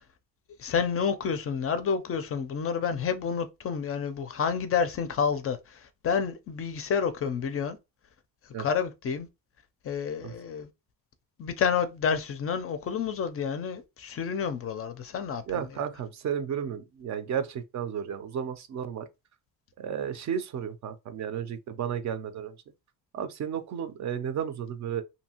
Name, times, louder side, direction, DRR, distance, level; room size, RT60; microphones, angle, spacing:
voice 1, 0.6-7.8 8.6-9.3 9.8-10.7 11.4-15.4, left 6 dB, 40° left, 0.4 m, -29 dB
voice 2, 15.5-19.1 19.8-22.6 23.1-25.0, right 8 dB, 50° right, 0.5 m, -33 dB
2.7 x 2.6 x 2.8 m
cardioid pair, 110°, 36 cm